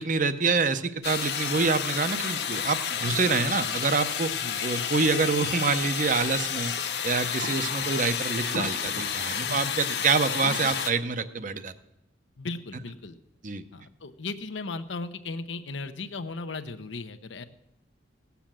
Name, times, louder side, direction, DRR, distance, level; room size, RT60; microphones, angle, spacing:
voice 1, 0.0-4.3 4.6-6.7 7.0-11.7 13.4-13.6, right 4 dB, 45° right, 12 dB, 0.7 m, -26 dB
sound 1, 1.0-10.9, left 7 dB, 60° left, 1.0 m, -30 dB
voice 2, 9.5-10.0 12.4-13.2 13.7-17.4, left 3 dB, 90° left, 9 dB, 0.8 m, -37 dB
17.0 x 7.0 x 7.4 m, 0.89 s
head